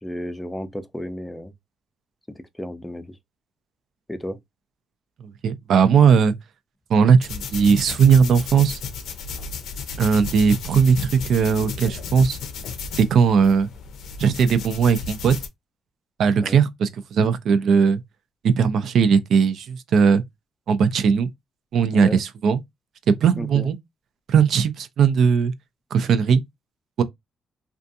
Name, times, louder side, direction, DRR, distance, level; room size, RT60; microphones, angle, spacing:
voice 1, 0.0-1.5 2.3-3.2 4.1-4.4 16.4-16.6 21.9-22.2 23.4-23.7, left 1 dB, 10° left, 0.4 m, -33 dB
voice 2, 5.4-6.3 6.9-8.8 10.0-12.4 12.9-13.7 14.2-15.4 16.2-18.0 18.6-20.2 20.7-21.3 21.7-22.6 23.2-23.8 24.3-25.5 25.9-26.4 27.0-27.1, right 6 dB, 70° right, 0.4 m, -18 dB
sound 1, 7.2-15.5, left 5 dB, 75° left, 0.5 m, -34 dB
2.5 x 2.3 x 2.6 m
cardioid pair, 90°, 0 cm